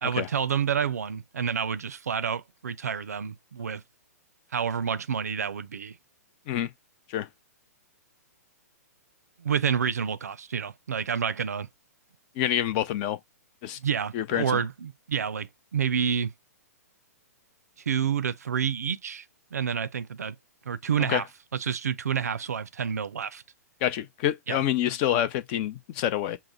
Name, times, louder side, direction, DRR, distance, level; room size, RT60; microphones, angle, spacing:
voice 1, 0.0-3.8 4.5-6.0 9.4-11.7 13.8-16.3 17.9-19.3 19.5-20.4 20.7-21.3 21.5-23.4 24.5-24.6, right 7 dB, 75° right, 0.5 m, -29 dB
voice 2, 12.4-13.2 13.6-13.8 14.1-14.6 21.0-21.2 23.8-26.4, left 11 dB, 35° left, 0.6 m, -27 dB
5.7 x 2.1 x 3.9 m
figure-of-eight pair, 115°, 9 cm